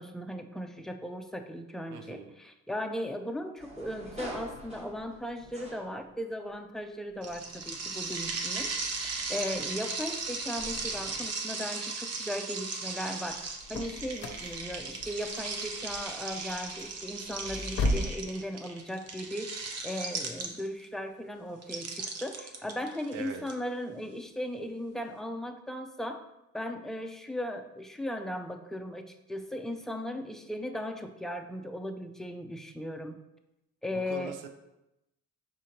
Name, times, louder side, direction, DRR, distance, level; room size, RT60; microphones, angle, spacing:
voice 1, 0.0-8.7 9.3-26.2 26.5-33.2 33.8-34.3, equal, ahead, 5 dB, 0.4 m, -37 dB
voice 2, 1.9-2.3 23.1-23.4 33.9-34.5, right 7 dB, 90° right, 6 dB, 0.6 m, -42 dB
sound 1, 3.6-6.5 7.1-11.3, right 1 dB, 20° right, 0.9 m, -48 dB
sound 2, 7.2-20.8 21.6-23.5, right 4 dB, 55° right, 0.7 m, -37 dB
sound 3, 13.3-18.2, left 1 dB, 45° left, 0.6 m, -35 dB
5.0 x 3.8 x 2.9 m, 0.92 s
cardioid pair, 90°, 30 cm